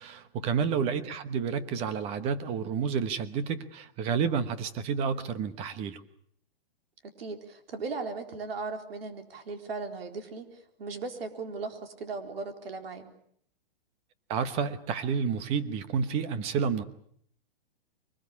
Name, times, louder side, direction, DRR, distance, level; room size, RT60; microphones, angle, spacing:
voice 1, 0.0-6.0 14.3-16.8, right 6 dB, 20° right, 13 dB, 1.1 m, -30 dB
voice 2, 7.2-13.1, right 4 dB, 75° right, 6 dB, 4.1 m, -38 dB
24.0 x 20.5 x 8.5 m, 0.64 s
hypercardioid pair, 165°, 30 cm